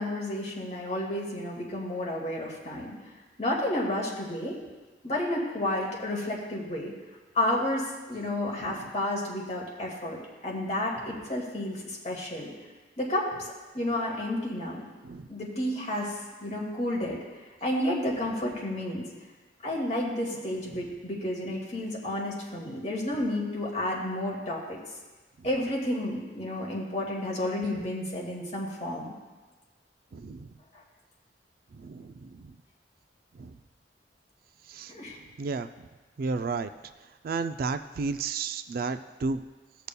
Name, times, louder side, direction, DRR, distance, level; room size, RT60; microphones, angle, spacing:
voice 1, 0.0-3.0 3.4-4.6 5.0-6.9 7.3-12.5 13.0-14.9 15.3-16.1 16.4-17.2 17.6-19.1 19.6-24.8 25.4-29.1 34.9-35.2, left 1 dB, 40° left, -3 dB, 1.9 m, -31 dB
voice 2, 8.6-8.9 15.0-15.3 20.7-20.8 25.4-25.5 30.1-30.5 31.7-32.6 33.3-33.6 34.7-34.9 35.4-35.9 36.2-36.7 37.2-39.5, right 4 dB, 55° right, 10 dB, 0.3 m, -33 dB
17.5 x 6.7 x 2.2 m, 1.3 s
head